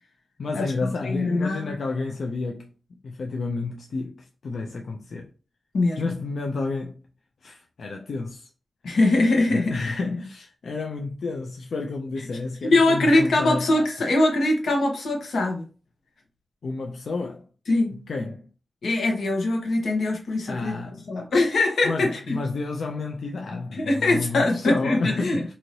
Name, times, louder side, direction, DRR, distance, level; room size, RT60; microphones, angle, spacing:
voice 1, 0.4-2.7 3.0-5.3 6.0-7.0 7.4-8.5 9.5-13.7 16.6-17.5 18.1-18.5 20.5-21.1 21.8-25.5, left 3 dB, 65° left, 0.3 m, -30 dB
voice 2, 1.0-1.7 5.7-6.1 8.8-9.8 10.1-10.2 12.6-15.6 17.7-18.0 18.8-22.4 23.5-25.5, left 2 dB, 90° left, 1.0 m, -22 dB
3.0 x 2.7 x 2.6 m
wide cardioid pair, 155°, 0 cm